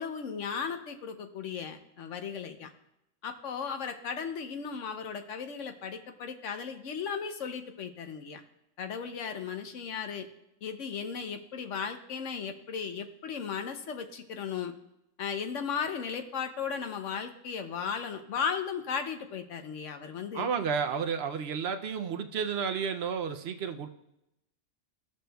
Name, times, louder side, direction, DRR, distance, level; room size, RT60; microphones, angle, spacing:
voice 1, 0.0-2.7 3.2-8.4 8.8-10.3 10.6-14.7 15.2-20.5, left 6 dB, 70° left, 7 dB, 1.0 m, -36 dB
voice 2, 20.3-23.9, right 6 dB, 65° right, 7 dB, 0.7 m, -31 dB
15.0 x 6.3 x 2.3 m, 0.86 s
omnidirectional pair, 1.4 m